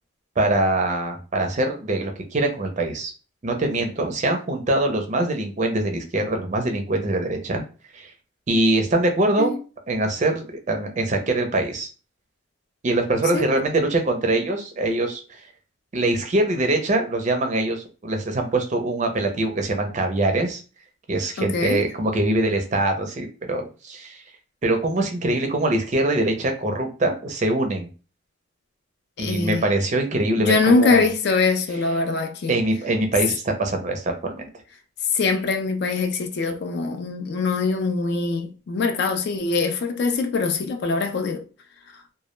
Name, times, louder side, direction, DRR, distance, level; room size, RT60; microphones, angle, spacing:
voice 1, 0.4-3.1 3.4-7.6 7.9-8.1 8.5-9.5 9.9-11.9 12.8-15.4 15.9-20.6 21.1-24.2 24.6-27.9 29.2-31.0 32.5-34.5, right 2 dB, 35° right, 0.4 m, -23 dB
voice 2, 21.4-21.8 29.2-29.6 30.4-32.5 35.1-41.4, left 4 dB, 55° left, 0.3 m, -23 dB
2.2 x 2.1 x 3.0 m
head